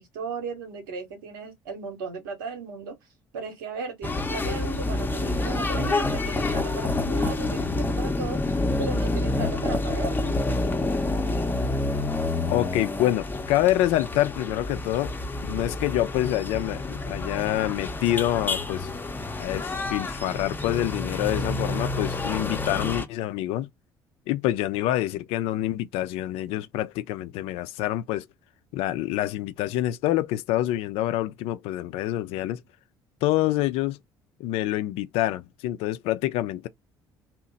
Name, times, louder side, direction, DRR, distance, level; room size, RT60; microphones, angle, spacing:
voice 1, 0.0-3.0 3.3-8.4 8.8-10.4, right 4 dB, 75° right, 1.0 m, -36 dB
sound 1, 4.0-23.1, left 2 dB, 15° left, 0.6 m, -28 dB
voice 2, 12.5-15.1 15.4-18.9 19.4-23.7 24.3-28.3 28.7-32.6 33.2-34.0 34.4-36.7, left 14 dB, 60° left, 0.4 m, -26 dB
2.8 x 2.0 x 3.8 m
figure-of-eight pair, 50°, 11 cm